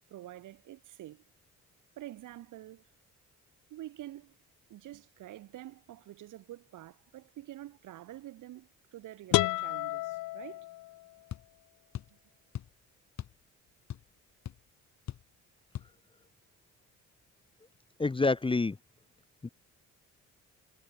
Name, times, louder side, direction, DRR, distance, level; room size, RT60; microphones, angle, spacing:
voice 1, 0.1-1.2 2.0-2.9 3.7-4.4 4.7-10.7 12.1-12.2, right 14 dB, 85° right, 5.8 m, -47 dB
sound 1, 9.3-11.2, left 18 dB, 90° left, 0.8 m, -31 dB
sound 2, 11.3-11.5 11.9-12.2 12.5-12.8 13.2-13.4 13.7-14.2 14.5-14.6 15.1-15.3 15.7-15.9, left 10 dB, 65° left, 2.9 m, -40 dB
voice 2, 18.0-18.7 19.4-19.5, left 3 dB, 15° left, 0.9 m, -27 dB
cardioid pair, 90°, 30 cm